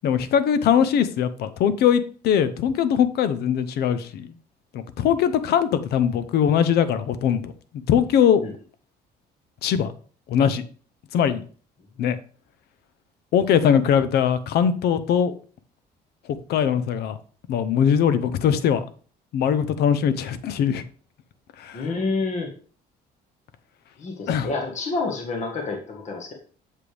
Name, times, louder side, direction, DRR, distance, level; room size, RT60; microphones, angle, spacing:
voice 1, 0.0-4.3 4.7-7.5 7.9-8.4 9.6-9.9 10.3-10.6 11.1-11.4 12.0-12.2 13.3-15.3 16.5-17.2 17.5-18.8 19.3-20.8 21.6-21.9 24.3-24.5, left 8 dB, 70° left, 0.8 m, -21 dB
voice 2, 21.7-22.5 24.0-26.3, left 3 dB, 45° left, 1.6 m, -28 dB
7.5 x 6.6 x 3.4 m
cardioid pair, 110°, 17 cm